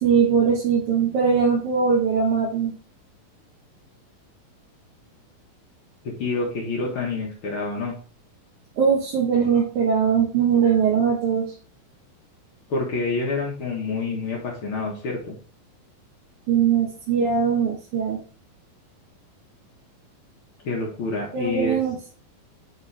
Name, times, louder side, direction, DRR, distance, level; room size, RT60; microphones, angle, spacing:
voice 1, 0.0-2.7 8.8-11.5 16.5-18.2 21.3-22.1, right 6 dB, 65° right, -4 dB, 2.5 m, -21 dB
voice 2, 6.0-7.9 12.7-15.3 20.6-21.8, left 3 dB, 60° left, -1 dB, 1.3 m, -27 dB
8.6 x 3.7 x 3.3 m, 0.39 s
omnidirectional pair, 4.2 m